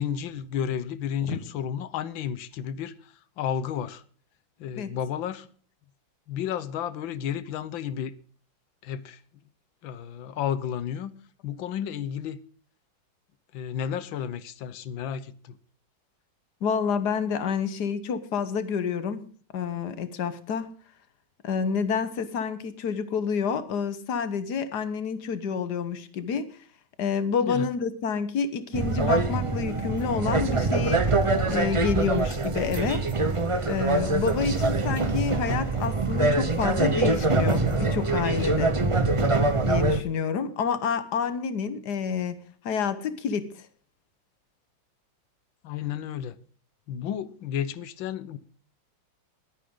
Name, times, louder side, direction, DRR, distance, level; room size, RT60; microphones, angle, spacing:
voice 1, 0.0-4.0 4.6-5.5 6.3-8.1 8.8-9.2 9.8-11.1 11.4-12.4 13.5-15.6 27.5-27.7 45.6-46.4 46.9-48.4, left 9 dB, 80° left, 1.6 m, -32 dB
voice 2, 16.6-19.2 19.5-20.7 21.4-26.6 27.0-31.1 31.5-33.1 33.7-38.7 39.6-42.4 42.6-43.7, left 6 dB, 60° left, 1.7 m, -28 dB
sound 1, 28.7-40.0, right 3 dB, 40° right, 0.4 m, -24 dB
20.5 x 9.2 x 3.8 m
omnidirectional pair, 2.1 m